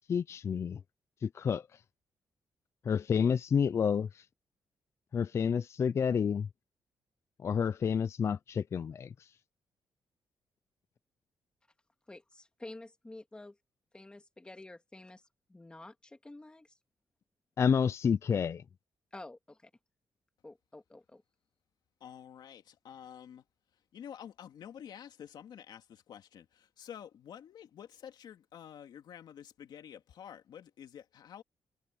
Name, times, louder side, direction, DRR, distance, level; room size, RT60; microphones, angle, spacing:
voice 1, 0.1-0.8 1.2-1.7 2.9-4.2 5.1-6.5 7.4-9.3 17.6-18.6, left 7 dB, 35° left, 0.3 m, -29 dB
voice 2, 12.1-13.6 13.9-15.2 15.5-16.7 19.1-19.7 20.4-21.2, left 2 dB, 10° left, 2.3 m, -49 dB
voice 3, 22.0-23.4 23.9-31.4, left 9 dB, 70° left, 2.4 m, -49 dB
cardioid pair, 145°, 8 cm